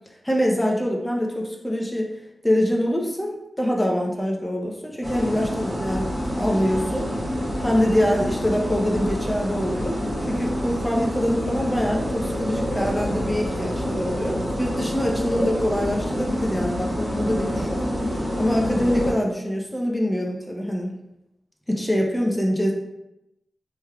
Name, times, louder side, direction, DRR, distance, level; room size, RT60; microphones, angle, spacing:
voice 1, 0.2-2.1 2.4-7.1 7.6-10.0 10.3-17.8 18.4-21.0 21.7-22.7, equal, 10° left, -1 dB, 0.6 m, -24 dB
sound 1, 5.0-19.1, equal, 10° right, 1.4 m, -27 dB
3.4 x 3.3 x 2.2 m, 0.88 s
wide cardioid pair, 90°, 0 cm